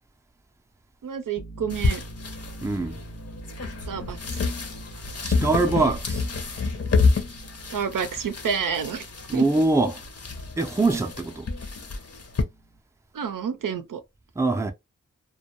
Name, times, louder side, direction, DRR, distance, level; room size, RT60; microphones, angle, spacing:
voice 1, 1.0-2.0 3.9-4.2 7.7-9.0 9.3-9.5 13.1-14.0, right 7 dB, 80° right, 0.5 m, -29 dB
sound 1, 1.4-12.8, right 1 dB, 80° left, 1.1 m, -45 dB
sound 2, 1.7-12.4, left 4 dB, 50° left, 0.6 m, -29 dB
voice 2, 2.6-3.0 5.2-6.3 9.3-10.0 10.6-11.5 14.4-14.7, right 3 dB, 10° right, 0.4 m, -23 dB
2.2 x 2.2 x 2.8 m
cardioid pair, 50°, 32 cm